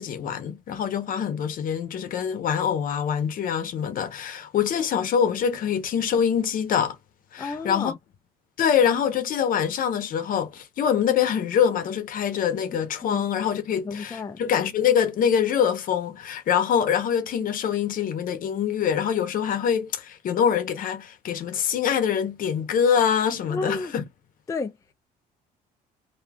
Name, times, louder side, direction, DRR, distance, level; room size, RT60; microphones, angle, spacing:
voice 1, 0.0-7.0 7.3-7.9 8.6-24.0, left 8 dB, 55° left, 0.8 m, -24 dB
voice 2, 7.4-7.9 13.0-13.2 13.8-14.4 23.5-23.9 24.5-24.9, left 3 dB, 20° left, 0.4 m, -31 dB
2.7 x 2.3 x 3.4 m
cardioid pair, 110°, 17 cm